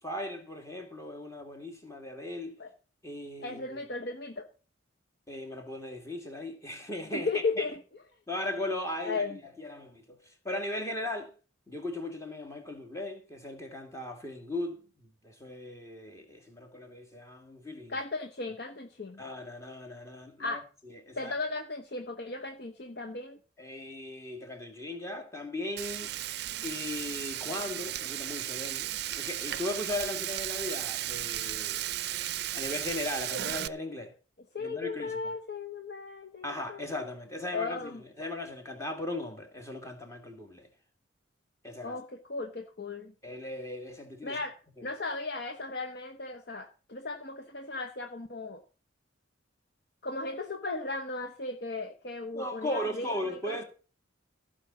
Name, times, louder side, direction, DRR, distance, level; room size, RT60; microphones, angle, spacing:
voice 1, 0.0-2.6 3.0-3.8 5.3-7.7 8.3-11.3 11.7-18.0 19.2-21.4 23.6-26.2 26.6-31.9 32.5-34.1 34.6-35.3 36.4-40.7 41.6-42.0 43.2-44.4 44.8-44.9 52.3-53.6, left 1 dB, 15° left, 2.2 m, -38 dB
voice 2, 3.4-4.5 7.1-7.8 9.0-9.4 17.9-19.2 20.4-20.6 21.2-23.4 34.5-36.9 37.5-38.0 41.8-43.1 44.2-44.5 44.8-48.6 50.0-53.6, left 3 dB, 55° left, 1.0 m, -36 dB
Frying (food), 25.8-33.7, right 13 dB, 55° right, 0.5 m, -35 dB
15.5 x 5.3 x 7.0 m
head